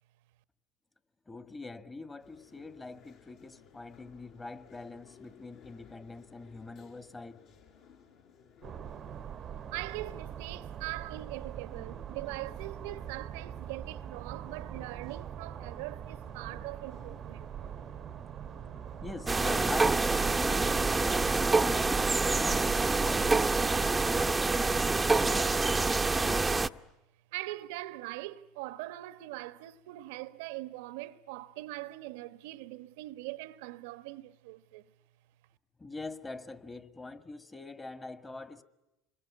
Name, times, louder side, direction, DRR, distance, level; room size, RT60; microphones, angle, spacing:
voice 1, 1.3-7.4 19.0-26.0 35.8-38.6, left 3 dB, 15° left, 1.9 m, -44 dB
sound 1, 2.2-21.1, left 7 dB, 60° left, 7.1 m, -58 dB
sound 2, 8.6-23.4, right 9 dB, 40° right, 0.9 m, -43 dB
voice 2, 9.7-17.5 27.3-34.8, right 18 dB, 75° right, 1.0 m, -41 dB
sound 3, 19.3-26.7, right 3 dB, 15° right, 0.9 m, -26 dB
27.0 x 22.5 x 9.7 m
hypercardioid pair, 80°, 0 cm